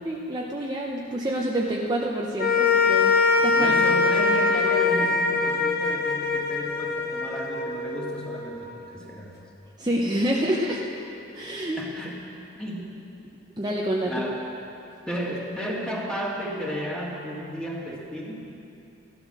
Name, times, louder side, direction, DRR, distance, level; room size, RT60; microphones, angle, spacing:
voice 1, 0.0-3.1 3.4-3.9 9.8-10.8 11.3-11.8 13.6-14.2, right 1 dB, 20° right, -3 dB, 0.8 m, -27 dB
sound 1, 2.4-8.8, left 4 dB, 50° left, 1.0 m, -23 dB
voice 2, 3.4-9.3 11.8-12.1 12.6-12.9 14.0-14.5 15.1-18.5, equal, 5° left, -4 dB, 2.2 m, -33 dB
14.5 x 12.0 x 6.4 m, 2.8 s
head